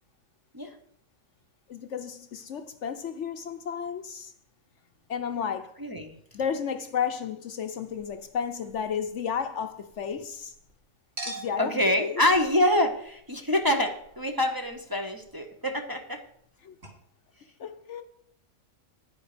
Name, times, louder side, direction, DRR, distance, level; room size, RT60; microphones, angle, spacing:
voice 1, 1.7-4.3 5.1-5.7 6.3-10.5 11.2-12.2 16.6-16.7 17.6-18.0, left 7 dB, 60° left, 1.0 m, -32 dB
voice 2, 5.8-6.1 11.6-16.2, left 1 dB, 15° right, 1.0 m, -26 dB
Chink clink, 7.8-10.7 11.2-16.5 16.8-16.9, right 2 dB, 45° right, 2.9 m, -47 dB
10.0 x 9.8 x 5.0 m
omnidirectional pair, 1.5 m